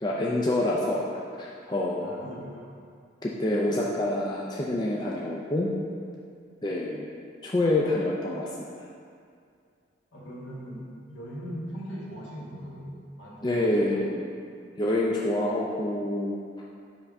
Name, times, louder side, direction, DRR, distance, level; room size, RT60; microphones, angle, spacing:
voice 1, 0.0-2.1 3.2-5.7 6.6-7.1 7.4-8.5 13.4-14.3 14.8-16.4, left 1 dB, 20° left, -4 dB, 0.4 m, -27 dB
voice 2, 2.0-2.8 10.1-14.0, equal, 70° left, -6 dB, 1.4 m, -40 dB
5.7 x 5.2 x 3.5 m, 2.3 s
head